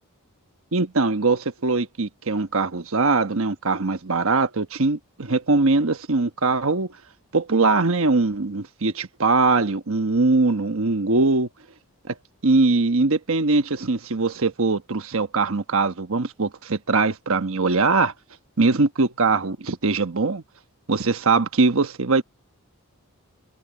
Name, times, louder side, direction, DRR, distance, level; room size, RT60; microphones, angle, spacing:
voice 1, 0.7-6.9 7.3-11.5 12.1-12.2 12.4-18.1 18.6-20.4 20.9-22.2, right 3 dB, 65° right, 1.2 m, -21 dB
head